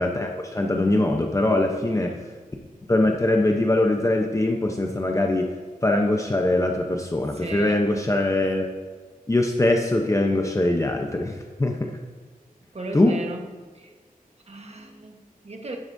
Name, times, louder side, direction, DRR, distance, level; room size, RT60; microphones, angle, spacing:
voice 1, 0.0-2.2 2.9-5.5 5.8-8.7 9.3-11.9 12.9-13.2, left 1 dB, 20° left, 2 dB, 0.7 m, -22 dB
voice 2, 1.7-2.4 2.7-2.8 7.3-7.9 12.7-13.5 13.7-13.9 14.5-15.8, right 2 dB, 45° right, 3 dB, 1.2 m, -37 dB
11.5 x 11.0 x 2.7 m, 1.4 s
wide cardioid pair, 110°, 15 cm